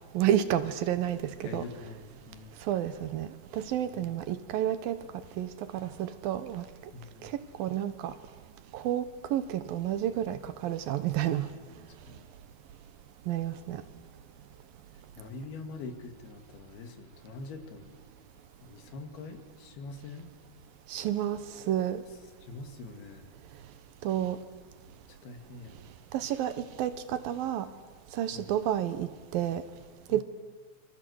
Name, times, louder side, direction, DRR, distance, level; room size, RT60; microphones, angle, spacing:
voice 1, 0.1-1.6 2.7-3.3 3.5-5.0 5.4-5.5 5.7-6.6 7.6-8.1 8.7-9.0 9.3-11.5 13.3-13.8 20.9-21.4 21.7-22.0 24.0-24.4 26.1-26.5 26.8-27.7 28.2-29.1 29.3-29.6 30.1-30.2, right 11 dB, 70° right, 12 dB, 2.6 m, -30 dB
voice 2, 1.4-2.6 3.8-4.1 6.9-7.3 12.1-12.3 15.2-18.0 18.6-20.3 22.4-23.3 25.1-25.8 28.3-28.5 30.1-30.2, left 3 dB, 70° left, 6 dB, 4.0 m, -44 dB
28.5 x 25.0 x 8.0 m, 1.4 s
omnidirectional pair, 4.7 m